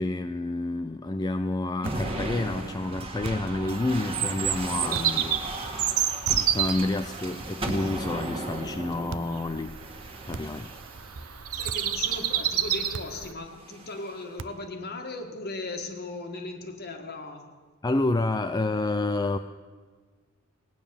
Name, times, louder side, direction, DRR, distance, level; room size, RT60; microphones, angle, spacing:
voice 1, 0.0-5.4 6.5-9.8 10.3-10.7 11.0-11.4 17.8-19.4, left 2 dB, 20° left, 8 dB, 0.4 m, -29 dB
sound 1, 1.8-11.2 11.9-12.4 13.5-14.2, right 1 dB, 25° right, 1.7 m, -36 dB
sound 2, 1.8-2.1 3.2-3.6 4.9-5.2 6.2-6.6 7.7-8.1 9.1-9.4 10.3-10.7 11.7-12.0 12.9-13.3 14.4-14.7, right 4 dB, 60° right, 0.4 m, -40 dB
Bird vocalization bird call bird song, 3.7-13.3, right 10 dB, 75° right, 0.9 m, -30 dB
voice 2, 11.5-17.6, left 2 dB, 50° left, 5 dB, 1.7 m, -37 dB
18.0 x 9.3 x 6.9 m, 1.5 s
head